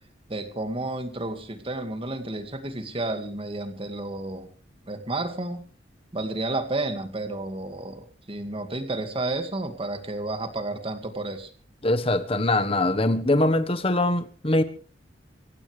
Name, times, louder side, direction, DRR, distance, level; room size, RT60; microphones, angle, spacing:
voice 1, 0.3-4.5 4.9-5.6 6.1-11.5, right 2 dB, 30° right, 2.2 m, -31 dB
voice 2, 11.8-14.6, left 2 dB, 30° left, 1.4 m, -22 dB
25.0 x 16.0 x 3.4 m
head